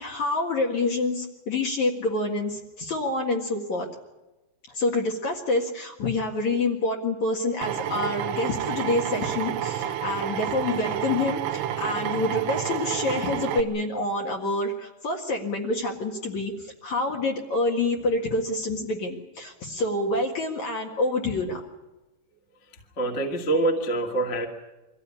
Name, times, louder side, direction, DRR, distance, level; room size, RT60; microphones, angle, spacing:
voice 1, 0.0-3.9 4.7-21.6, left 2 dB, 50° left, 0 dB, 2.6 m, -27 dB
Drill, 7.6-13.6, right 10 dB, 75° right, 3.0 m, -29 dB
voice 2, 23.0-24.5, right 2 dB, 25° left, 1 dB, 1.8 m, -25 dB
24.5 x 15.5 x 9.8 m, 1.1 s
omnidirectional pair, 5.0 m